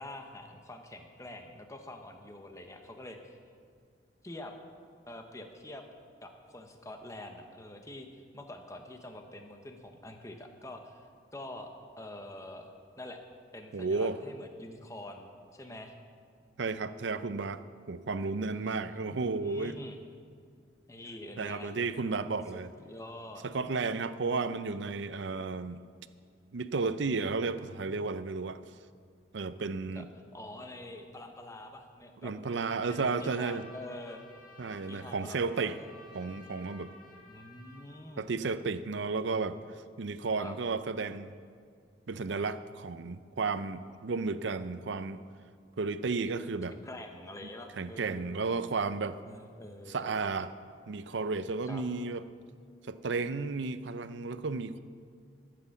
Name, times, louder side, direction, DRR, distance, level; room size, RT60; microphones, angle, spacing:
voice 1, 0.0-3.4 4.2-4.5 5.1-5.8 6.2-11.1 11.3-12.7 13.0-13.2 13.5-15.9 18.5-20.0 20.9-21.7 22.5-22.6 22.9-23.4 29.9-30.0 30.3-32.3 32.9-34.2 34.9-36.3 37.2-38.3 40.4-40.5 46.7-48.4 49.3-50.1 51.7-51.8, left 1 dB, 15° left, 5 dB, 0.9 m, -46 dB
voice 2, 13.7-14.2 16.6-19.8 21.4-22.7 23.4-25.8 26.5-28.6 29.3-30.1 32.2-33.6 34.6-35.8 36.1-36.9 38.2-39.6 40.0-41.3 42.1-45.2 45.8-46.7 47.8-49.2 49.9-50.5 50.9-52.2 52.9-54.8, right 4 dB, 70° right, 13 dB, 0.5 m, -33 dB
Trumpet, 32.4-37.9, left 1 dB, 45° left, 1.7 m, -54 dB
13.5 x 7.8 x 7.1 m, 2.2 s
head